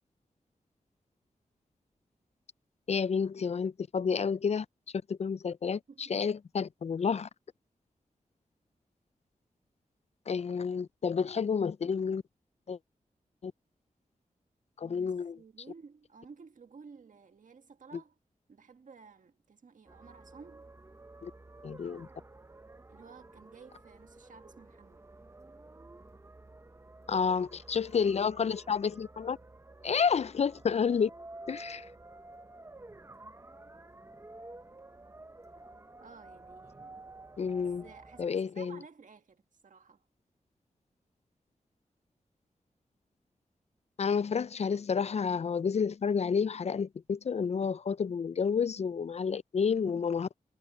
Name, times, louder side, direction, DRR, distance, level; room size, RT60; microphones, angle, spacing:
voice 1, 2.9-4.7 5.1-5.8 6.1-7.3 10.3-12.2 12.7-12.8 13.4-13.5 14.8-15.4 21.2-21.3 21.6-22.1 27.1-29.4 29.8-31.1 31.5-31.9 37.4-37.8 38.2-38.8 44.0-50.4, left 6 dB, 50° left, 0.4 m, -30 dB
voice 2, 14.8-18.2 18.5-20.7 22.9-25.1 30.9-31.0 36.0-37.0 37.8-40.1, right 5 dB, 70° right, 1.7 m, -54 dB
sound 1, 19.9-38.3, right 2 dB, 20° right, 0.8 m, -51 dB
wide cardioid pair, 85°, 14 cm